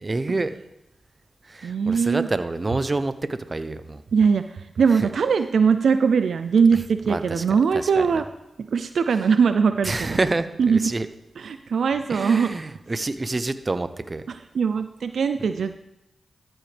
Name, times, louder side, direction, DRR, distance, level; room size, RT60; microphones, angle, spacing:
voice 1, 0.0-0.5 1.5-4.0 5.0-5.1 7.1-7.4 8.0-8.1 9.8-11.1 12.1-14.2, right 2 dB, 40° right, 11 dB, 0.7 m, -27 dB
voice 2, 1.6-2.3 4.1-8.3 8.7-10.2 10.6-10.8 11.4-12.6 14.3-15.7, right 6 dB, 80° right, 9 dB, 0.4 m, -21 dB
13.5 x 7.8 x 3.4 m, 0.87 s
cardioid pair, 45°, 0 cm